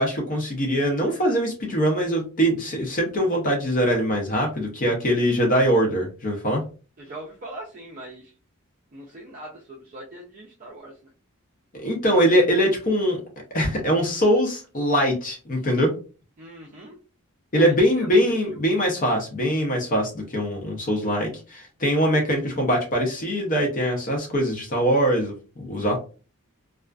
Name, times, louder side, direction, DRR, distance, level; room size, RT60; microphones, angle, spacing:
voice 1, 0.0-6.6 11.8-13.2 13.5-15.9 17.5-26.0, equal, 40° left, 1 dB, 0.6 m, -22 dB
voice 2, 7.0-8.3 8.9-11.0 16.4-17.0 17.6-18.3, right 1 dB, 35° right, -2 dB, 0.4 m, -40 dB
2.3 x 2.3 x 2.3 m, 0.34 s
head